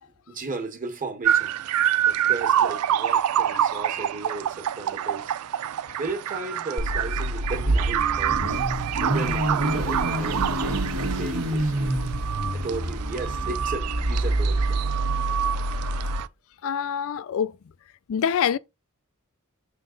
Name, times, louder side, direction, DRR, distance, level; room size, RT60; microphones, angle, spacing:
voice 1, 0.1-1.6 2.1-5.3 6.0-8.6 9.0-10.8 11.2-12.0 12.5-14.8, right 3 dB, 40° right, 1.5 m, -35 dB
sound 1, 1.2-16.3, right 10 dB, 85° right, 0.4 m, -27 dB
Car / Idling / Accelerating revving vroom, 6.8-16.2, right 1 dB, 70° right, 1.3 m, -27 dB
voice 2, 16.6-17.6 18.1-18.6, left 8 dB, 65° left, 0.4 m, -25 dB
6.5 x 3.9 x 3.9 m
head